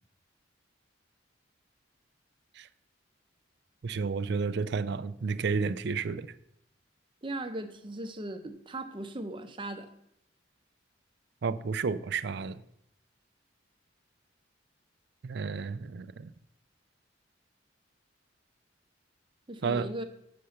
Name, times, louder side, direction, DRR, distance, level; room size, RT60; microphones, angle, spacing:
voice 1, 3.8-6.3 11.4-12.6 15.2-16.3 19.6-19.9, right 5 dB, 60° right, 14 dB, 0.4 m, -31 dB
voice 2, 7.2-9.9 19.5-20.0, right 1 dB, 25° right, 7 dB, 0.7 m, -38 dB
6.7 x 5.8 x 6.3 m, 0.75 s
head